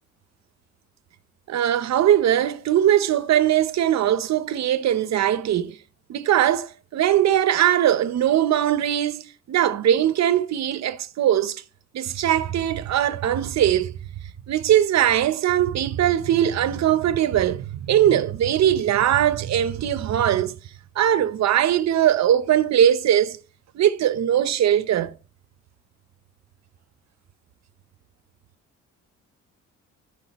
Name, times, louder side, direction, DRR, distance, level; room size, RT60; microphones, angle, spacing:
voice 1, 1.5-5.8 6.1-11.6 11.9-13.9 14.5-20.6 21.0-23.4 23.7-25.2, right 11 dB, 65° right, 0.9 m, -20 dB
14.0 x 5.0 x 3.1 m
cardioid pair, 90°, 30 cm